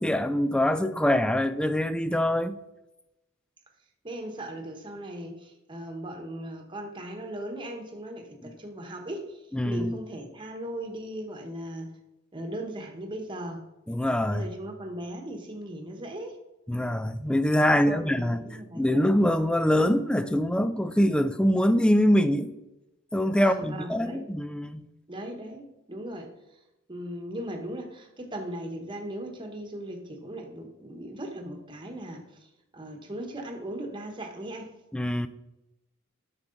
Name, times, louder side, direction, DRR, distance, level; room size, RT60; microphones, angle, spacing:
voice 1, 0.0-2.6 8.4-8.5 9.5-9.9 13.9-14.5 16.7-18.4 18.7-22.5 23.1-24.9 34.9-35.3, equal, 5° left, 0.4 m, -24 dB
voice 2, 4.0-11.9 12.3-13.6 14.3-16.4 17.9-18.8 23.3-24.2 25.1-26.3 26.9-34.7, right 1 dB, 25° right, 1.2 m, -38 dB
9.5 x 6.2 x 3.9 m
head